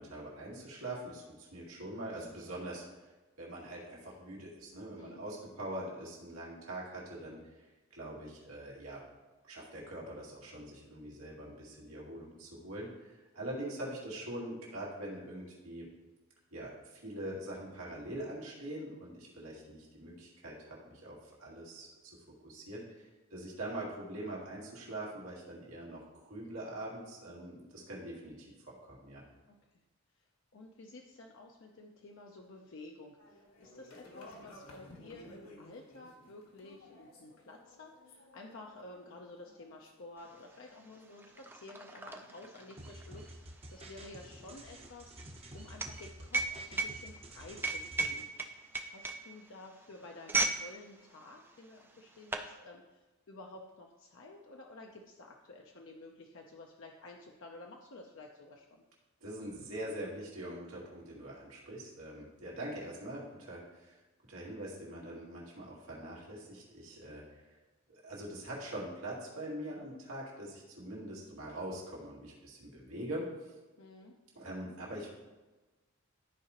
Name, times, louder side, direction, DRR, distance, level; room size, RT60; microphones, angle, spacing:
voice 1, 0.0-2.8 3.4-9.0 9.4-15.9 16.5-22.1 22.4-29.2 59.2-64.0 64.3-67.6 67.9-73.5 74.3-75.2, right 1 dB, 90° right, -5 dB, 2.2 m, -43 dB
voice 2, 30.5-48.3 48.8-58.8 73.8-74.1, left 2 dB, 60° left, 1 dB, 0.6 m, -52 dB
sound 1, 33.2-42.7, left 1 dB, 85° left, 1.6 m, -57 dB
sound 2, 40.3-40.4 40.7-50.7 51.0-51.2 51.9-52.5, right 3 dB, 10° right, 0.4 m, -36 dB
sound 3, 42.8-48.3, right 1 dB, 25° right, 0.8 m, -50 dB
12.5 x 4.8 x 2.9 m, 1.2 s
head